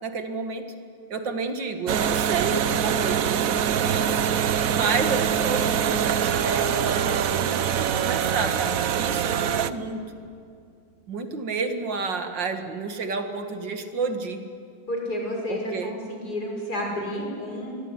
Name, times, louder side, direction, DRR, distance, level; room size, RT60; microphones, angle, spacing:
voice 1, 0.0-0.7 1.1-4.3 4.7-10.0 11.1-14.4 15.5-16.0, right 4 dB, 80° right, 7 dB, 2.6 m, -30 dB
sound 1, 1.9-9.7, right 8 dB, 55° right, 1.1 m, -24 dB
voice 2, 14.9-17.7, equal, 55° left, 0 dB, 6.4 m, -30 dB
26.5 x 22.5 x 9.9 m, 2.3 s
omnidirectional pair, 2.0 m